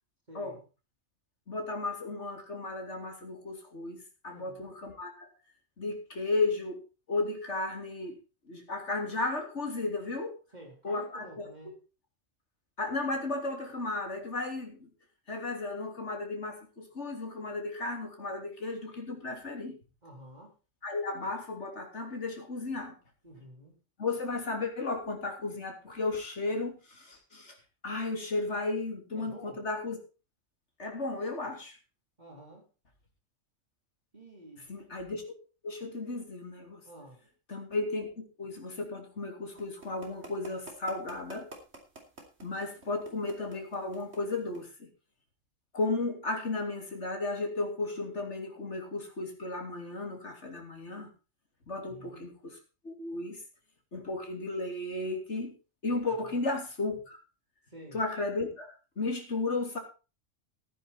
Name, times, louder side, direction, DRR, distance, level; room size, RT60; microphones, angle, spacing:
voice 1, 0.3-0.6 4.3-4.8 10.5-11.8 20.0-20.6 23.2-23.8 29.1-29.7 32.2-32.7 34.1-34.7 36.8-37.2 51.8-52.2 56.0-56.4 57.7-58.0, right 1 dB, 35° right, 0 dB, 4.3 m, -50 dB
voice 2, 1.5-5.3 5.8-6.8 7.1-8.1 8.5-10.3 10.8-11.5 12.8-14.9 15.3-19.8 20.8-22.9 24.0-27.5 27.8-30.0 30.8-31.8 34.7-35.2 35.6-36.8 37.5-38.1 38.4-41.5 42.4-44.9 45.7-51.1 51.7-52.5 52.8-53.4 53.9-55.6 55.8-57.2 57.9-59.8, left 3 dB, 65° left, 3 dB, 3.4 m, -34 dB
sound 1, 39.6-44.6, right 2 dB, 60° right, 3.6 m, -48 dB
14.5 x 9.9 x 4.4 m, 0.32 s
omnidirectional pair, 1.3 m